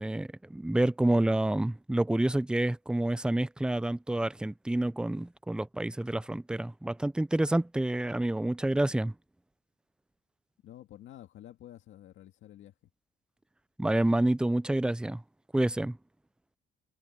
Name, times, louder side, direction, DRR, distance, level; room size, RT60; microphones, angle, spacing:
voice 1, 0.0-9.1 13.8-15.2 15.5-16.0, right 1 dB, 5° right, 0.4 m, -28 dB
voice 2, 10.6-12.7, left 12 dB, 80° left, 1.8 m, -50 dB
cardioid pair, 90°, 20 cm